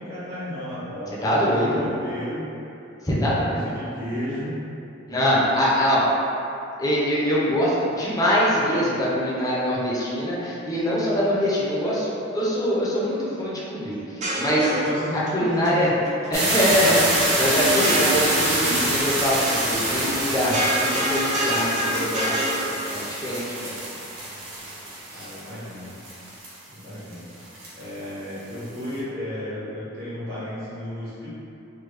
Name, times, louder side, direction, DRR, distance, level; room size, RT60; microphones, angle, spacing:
voice 1, 0.0-2.5 3.4-4.6 14.5-16.1 25.1-25.9 26.7-27.3 27.7-31.3, left 1 dB, 50° right, -12 dB, 1.2 m, -33 dB
voice 2, 1.2-1.8 3.0-3.7 5.1-6.0 6.8-14.0 14.4-14.7 15.3-15.9 16.3-23.7 25.1-25.2, equal, 20° left, -7 dB, 0.5 m, -23 dB
sound 1, 14.0-15.3 15.6-16.3 16.6-18.6 18.9-19.6 19.9-22.6, equal, 35° right, 0.5 m, -27 dB
sound 2, 16.3-26.6 27.1-27.2 27.4-27.8, right 1 dB, 80° right, 0.9 m, -26 dB
3.3 x 2.2 x 3.2 m, 2.7 s
head